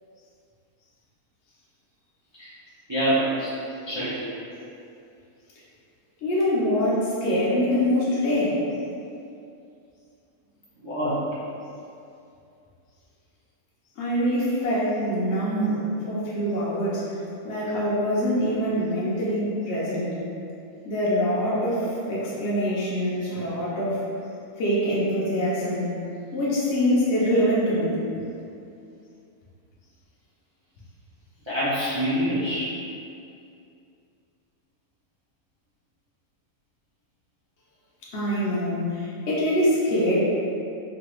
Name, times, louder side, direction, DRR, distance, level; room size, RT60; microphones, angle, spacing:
voice 1, 2.9-3.5 3.9-4.3 10.8-11.2 31.4-32.7, equal, 35° right, -12 dB, 0.4 m, -25 dB
voice 2, 6.2-8.6 14.0-17.0 17.4-20.1 20.8-24.0 24.6-26.0 26.3-28.0 38.1-40.2, equal, 60° left, -8 dB, 0.7 m, -24 dB
3.1 x 2.2 x 2.9 m, 2.5 s
omnidirectional pair, 1.6 m